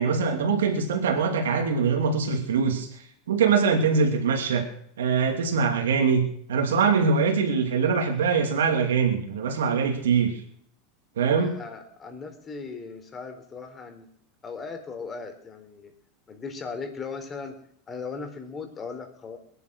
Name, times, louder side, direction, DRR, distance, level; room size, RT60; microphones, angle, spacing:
voice 1, 0.0-2.9 3.3-4.6 5.0-10.4 11.2-11.5, right 5 dB, 85° right, 3 dB, 2.7 m, -23 dB
voice 2, 11.4-14.1 14.4-15.9 16.3-17.6 17.9-19.4, left 4 dB, 25° left, 6 dB, 4.1 m, -38 dB
21.5 x 10.0 x 6.3 m, 0.65 s
hypercardioid pair, 100°, 0 cm